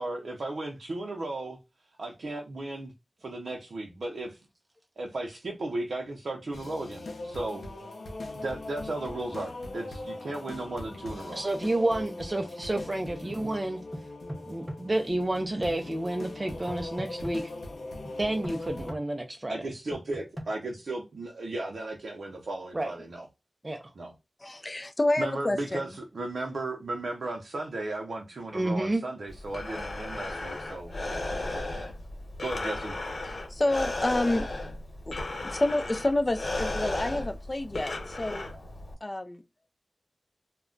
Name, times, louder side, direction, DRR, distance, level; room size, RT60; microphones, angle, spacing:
voice 1, 0.0-1.6 2.0-2.9 3.2-4.4 5.0-7.7 8.3-11.4 19.5-23.3 24.0-24.1 25.2-31.9 32.4-32.9, right 2 dB, 80° right, 0.5 m, -35 dB
sound 1, 6.5-18.9, left 2 dB, 85° left, 0.6 m, -40 dB
voice 2, 11.3-13.8 14.5-17.4 18.2-19.6 22.7-22.9 23.6-23.8 28.5-29.0, right 1 dB, 30° right, 0.4 m, -30 dB
sound 2, 13.9-14.8 16.7-17.3 18.4-19.0 19.9-20.5, equal, 15° right, 0.8 m, -38 dB
voice 3, 24.4-25.8 33.5-34.5 35.1-35.2 35.4-38.5 39.0-39.4, left 1 dB, 30° left, 0.4 m, -28 dB
Breathing, 29.3-38.9, left 2 dB, 70° left, 1.0 m, -35 dB
2.2 x 2.1 x 3.7 m
wide cardioid pair, 85°, 0 cm